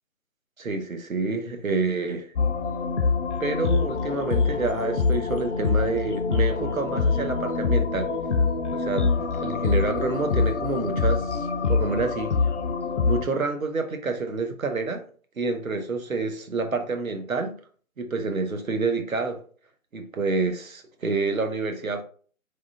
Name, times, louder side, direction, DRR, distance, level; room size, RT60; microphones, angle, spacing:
voice 1, 0.6-2.3 3.4-8.1 8.7-9.1 9.4-12.4 13.0-15.0 15.4-17.6 18.0-19.4 19.9-22.0, right 3 dB, 75° right, 1.0 m, -28 dB
sound 1, 2.4-13.2, left 4 dB, 60° left, 0.5 m, -25 dB
3.6 x 3.2 x 3.6 m
figure-of-eight pair, 155°, 41 cm